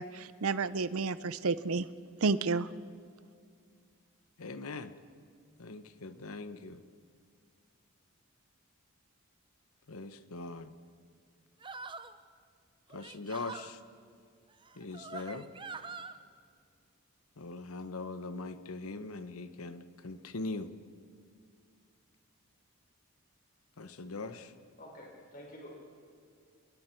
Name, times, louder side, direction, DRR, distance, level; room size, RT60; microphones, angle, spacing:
voice 1, 0.0-1.9 2.2-2.7, right 4 dB, 70° right, 15 dB, 0.6 m, -31 dB
voice 2, 4.4-4.9 5.6-6.8 9.9-10.7 12.9-13.8 14.8-15.5 17.4-20.7 23.8-24.5, left 3 dB, 75° left, 11 dB, 1.0 m, -41 dB
sound 1, 11.6-12.2 12.9-13.7 14.6-16.1, right 4 dB, 20° right, 0.6 m, -44 dB
voice 3, 24.8-25.8, equal, 40° left, -1 dB, 4.6 m, -49 dB
28.5 x 21.5 x 4.5 m, 2.1 s
head